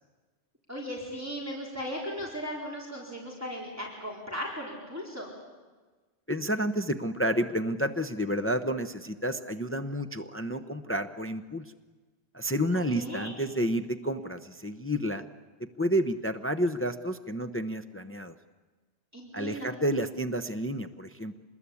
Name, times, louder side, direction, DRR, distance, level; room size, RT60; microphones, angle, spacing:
voice 1, 0.7-5.3 12.7-13.3 19.1-19.8, equal, 15° right, -3 dB, 4.2 m, -37 dB
voice 2, 6.3-11.7 12.3-15.3 15.6-18.3 19.3-21.4, equal, 15° left, 8 dB, 0.8 m, -30 dB
26.5 x 20.5 x 8.5 m, 1.3 s
omnidirectional pair, 1.1 m